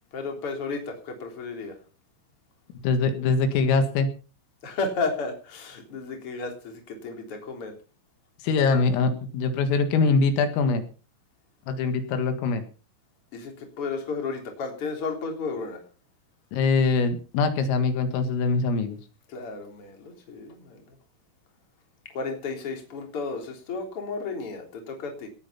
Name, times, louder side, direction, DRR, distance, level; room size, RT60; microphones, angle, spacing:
voice 1, 0.1-1.8 4.6-7.7 13.3-15.8 19.3-21.0 22.1-25.3, left 4 dB, 30° left, 3 dB, 3.7 m, -33 dB
voice 2, 2.8-4.1 8.4-10.8 11.7-12.6 16.5-19.0, left 4 dB, 80° left, 8 dB, 4.4 m, -23 dB
18.5 x 8.8 x 5.7 m, 0.37 s
omnidirectional pair, 5.9 m